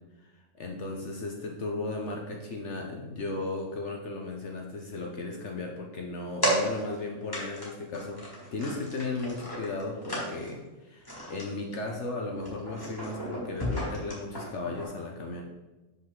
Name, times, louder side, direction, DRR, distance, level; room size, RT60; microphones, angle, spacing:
voice 1, 0.6-8.2 8.5-15.4, left 2 dB, 60° left, 1 dB, 0.9 m, -35 dB
sound 1, 6.4-7.0 7.3-7.7 7.9-10.6 11.0-11.4 11.7-12.0 12.3-14.9, right 1 dB, 15° left, 1.7 m, -34 dB
6.0 x 5.4 x 3.7 m, 1.1 s
omnidirectional pair, 1.5 m